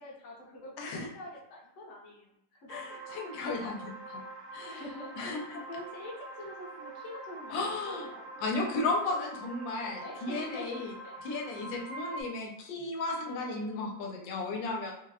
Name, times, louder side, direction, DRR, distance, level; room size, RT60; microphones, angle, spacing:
voice 1, 0.0-2.9 4.6-8.2 10.0-11.2 13.2-14.2, left 1 dB, 55° left, -2 dB, 0.9 m, -46 dB
voice 2, 0.8-1.1 2.7-4.2 4.5-4.8 5.2-5.6 7.5-8.1 8.4-10.9 11.2-14.9, left 3 dB, 80° left, 1 dB, 1.3 m, -34 dB
sound 1, 2.7-12.2, right 2 dB, 85° right, 0.7 m, -45 dB
3.8 x 2.2 x 3.4 m, 0.80 s
omnidirectional pair, 2.0 m